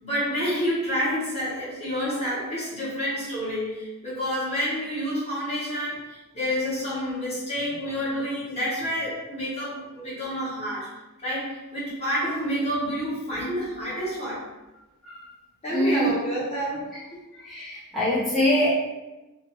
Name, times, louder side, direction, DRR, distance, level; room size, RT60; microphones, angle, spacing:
voice 1, 0.0-11.0 11.2-14.5 15.6-17.0, equal, 30° left, -8 dB, 1.0 m, -29 dB
voice 2, 15.7-16.1 17.3-18.7, equal, ahead, -11 dB, 0.4 m, -24 dB
2.5 x 2.3 x 2.9 m, 1.0 s
head